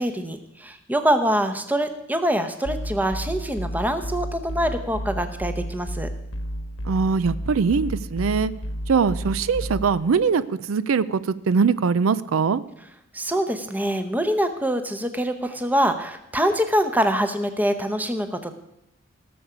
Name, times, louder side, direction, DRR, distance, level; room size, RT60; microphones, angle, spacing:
voice 1, 0.0-6.1 13.1-18.5, equal, 10° right, 8 dB, 0.8 m, -24 dB
sound 1, 2.6-10.0, equal, 65° left, 1.1 m, -32 dB
voice 2, 6.9-8.5 8.9-12.6, right 5 dB, 90° right, 16 dB, 0.5 m, -22 dB
17.5 x 7.0 x 5.0 m, 0.83 s
head